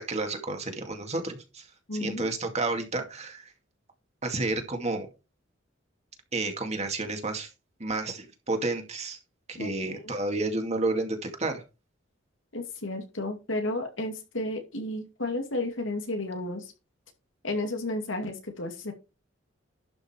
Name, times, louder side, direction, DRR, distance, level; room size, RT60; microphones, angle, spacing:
voice 1, 0.0-1.7 2.0-3.5 4.2-5.1 6.3-7.5 7.8-9.2 9.5-11.6, right 2 dB, 35° right, 4 dB, 2.3 m, -31 dB
voice 2, 1.9-2.3 9.6-10.0 12.5-16.7 17.4-18.9, left 2 dB, 85° left, 4 dB, 2.5 m, -32 dB
11.5 x 5.7 x 4.5 m, 0.29 s
head